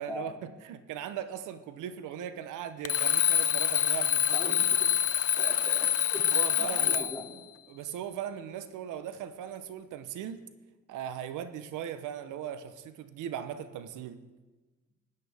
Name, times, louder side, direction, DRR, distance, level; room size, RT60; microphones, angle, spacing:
voice 1, 0.0-4.5 6.3-7.1 7.7-10.4 10.9-14.2, right 9 dB, 85° right, 11 dB, 0.8 m, -38 dB
Alarm, 2.8-7.3, left 10 dB, 50° left, 0.5 m, -26 dB
voice 2, 4.3-4.9 5.4-7.3, left 2 dB, 10° left, 0 dB, 2.4 m, -41 dB
14.5 x 11.0 x 3.5 m, 1.2 s
cardioid pair, 90°, 30 cm